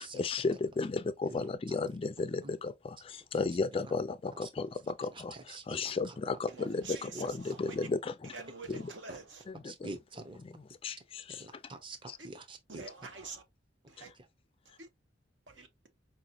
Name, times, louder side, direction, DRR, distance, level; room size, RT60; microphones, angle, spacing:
voice 1, 0.0-8.3 8.7-8.8 9.6-9.9 10.8-11.4 12.1-12.2 14.0-14.1, left 4 dB, 30° left, 0.3 m, -34 dB
voice 2, 1.3-1.8 2.4-2.5 3.7-3.9 4.3-4.5 5.0-6.2 7.1-7.2 9.1-9.2 9.6-10.4 11.3-12.8 14.1-14.3, right 2 dB, 25° right, 0.7 m, -47 dB
voice 3, 6.5-7.9 8.2-9.5 12.2-12.3 12.7-13.4 13.9-14.1 14.6-14.9 15.5-15.9, right 3 dB, 70° right, 1.0 m, -46 dB
4.8 x 2.9 x 2.7 m
head